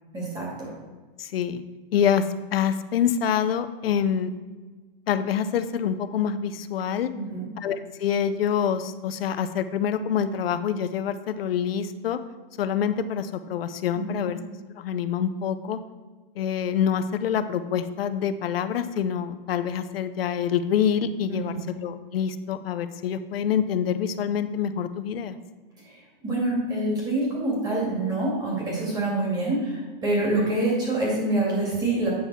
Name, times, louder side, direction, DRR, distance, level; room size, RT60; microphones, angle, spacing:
voice 1, 0.1-0.7 7.1-7.4 13.9-14.3 21.3-21.6 25.9-32.1, right 2 dB, 15° right, -4 dB, 2.2 m, -26 dB
voice 2, 1.2-1.6 1.9-4.3 5.1-7.1 7.6-12.2 12.6-14.4 14.8-15.8 16.4-25.4, left 8 dB, 80° left, 11 dB, 0.7 m, -26 dB
8.8 x 5.5 x 4.2 m, 1.3 s
supercardioid pair, 160°, 29 cm